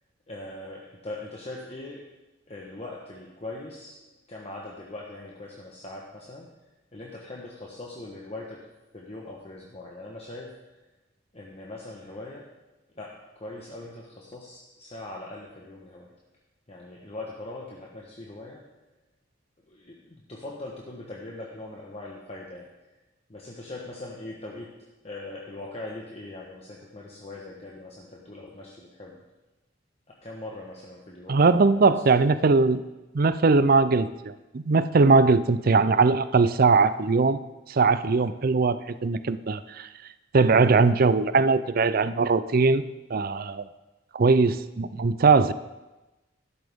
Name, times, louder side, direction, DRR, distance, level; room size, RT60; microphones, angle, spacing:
voice 1, 0.3-2.1 2.5-6.5 6.9-8.7 8.9-10.6 11.3-12.5 12.9-16.1 16.7-18.7 19.7-22.7 23.3-24.7 25.0-29.2 30.2-32.2, left 2 dB, 35° left, -2 dB, 1.2 m, -41 dB
voice 2, 31.3-32.8 33.1-37.4 37.7-39.9 40.3-42.8 43.1-43.7 44.1-45.5, right 4 dB, 50° right, 14 dB, 0.5 m, -20 dB
13.0 x 11.5 x 3.6 m, 1.1 s
head